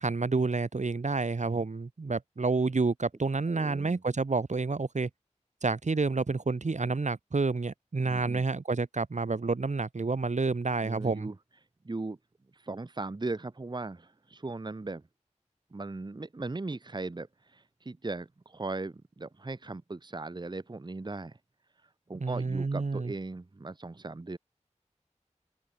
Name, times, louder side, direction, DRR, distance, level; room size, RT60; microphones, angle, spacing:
voice 1, 0.0-5.1 5.6-11.3 22.1-23.1, right 3 dB, 70° right, 0.9 m, -29 dB
voice 2, 3.5-4.0 8.0-8.4 10.8-11.4 11.8-12.2 12.5-15.0 15.7-21.4 22.1-24.4, right 3 dB, 35° right, 0.7 m, -38 dB
wide cardioid pair, 50°, 13 cm